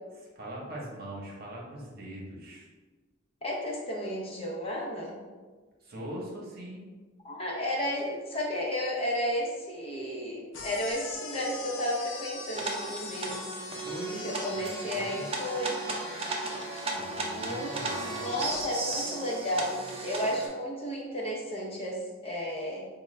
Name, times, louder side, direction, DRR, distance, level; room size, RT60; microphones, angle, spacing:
voice 1, 0.2-2.7 5.8-6.8 13.8-14.2 14.5-14.6 14.9-15.3 16.9-18.2, right 1 dB, 50° right, -3 dB, 1.0 m, -41 dB
voice 2, 3.4-5.2 7.2-13.5 14.2-15.8 17.3-22.9, equal, 30° left, -3 dB, 0.7 m, -33 dB
sound 1, 10.5-18.7, left 3 dB, 75° left, 0.6 m, -42 dB
sound 2, 12.5-20.5, right 2 dB, 30° right, 0.6 m, -35 dB
5.0 x 2.2 x 3.2 m, 1.4 s
head